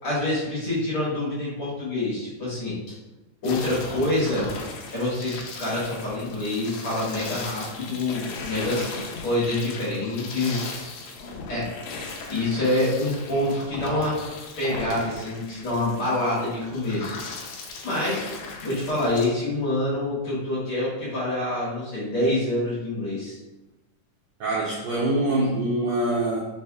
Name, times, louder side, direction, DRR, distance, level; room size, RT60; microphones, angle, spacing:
voice 1, 0.0-3.0 3.4-4.5 4.9-8.8 9.2-10.7 11.5-11.7 12.3-14.2 14.6-17.2 17.8-18.2 18.6-23.4, left 1 dB, 50° left, -9 dB, 2.2 m, -26 dB
sound 1, 3.4-19.3, left 4 dB, 80° left, 1.6 m, -37 dB
voice 2, 24.4-26.4, right 1 dB, 80° right, -5 dB, 1.6 m, -24 dB
5.5 x 3.4 x 2.3 m, 1.0 s
omnidirectional pair, 3.7 m